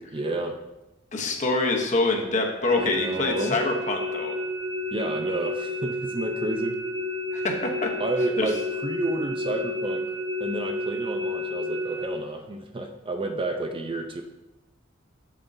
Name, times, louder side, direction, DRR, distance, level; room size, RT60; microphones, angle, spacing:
voice 1, 0.1-0.6 2.8-3.6 4.9-6.8 8.0-10.1 10.4-14.2, right 2 dB, 25° right, 5 dB, 0.5 m, -30 dB
voice 2, 1.1-4.4 7.3-7.9 8.4-8.5, left 2 dB, 40° left, 2 dB, 1.0 m, -25 dB
sound 1, 2.6-12.1, left 1 dB, 80° right, 1.0 m, -31 dB
7.2 x 7.2 x 2.7 m, 0.98 s
head